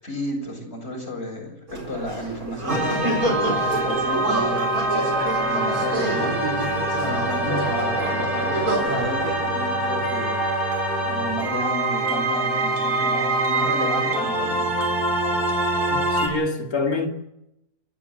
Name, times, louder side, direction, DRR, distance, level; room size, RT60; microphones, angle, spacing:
voice 1, 0.0-3.0 3.6-4.8 5.4-6.4 7.0-10.4 11.0-14.7, left 1 dB, 45° left, 7.1 m, -32 dB
sound 1, 1.7-9.3, right 1 dB, 70° right, 4.9 m, -28 dB
sound 2, 2.7-16.3, right 2 dB, 35° right, 3.9 m, -25 dB
Wind instrument woodwind instrument, 4.9-11.4, equal, 10° right, 2.4 m, -32 dB
voice 2, 16.1-17.1, left 3 dB, 75° left, 3.0 m, -25 dB
30.0 x 11.5 x 7.6 m
omnidirectional pair, 1.5 m